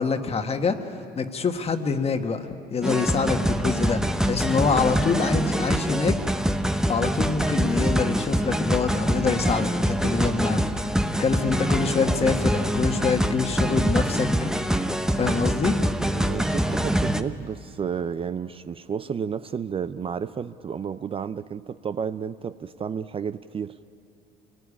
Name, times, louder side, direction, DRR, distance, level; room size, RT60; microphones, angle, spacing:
voice 1, 0.0-4.0 4.3-6.2 6.9-10.9 11.2-14.5 15.2-15.8, left 5 dB, 35° left, 7 dB, 1.6 m, -25 dB
sound 1, 2.8-17.2, equal, 5° right, 0.9 m, -24 dB
voice 2, 16.1-23.7, right 7 dB, 35° right, 13 dB, 0.5 m, -31 dB
27.5 x 19.0 x 9.9 m, 2.7 s
cardioid pair, 110°, 17 cm